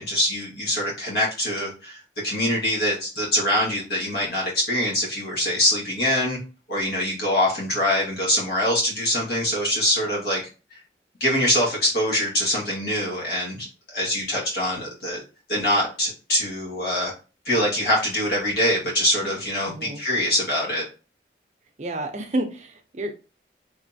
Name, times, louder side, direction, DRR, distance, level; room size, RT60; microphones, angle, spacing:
voice 1, 0.0-6.4 6.7-10.4 11.2-15.2 15.5-17.1 17.4-20.8, left 1 dB, 65° left, -4 dB, 1.6 m, -24 dB
voice 2, 19.7-20.0 21.8-23.2, right 1 dB, 40° right, 4 dB, 0.6 m, -30 dB
3.6 x 3.2 x 2.6 m, 0.33 s
head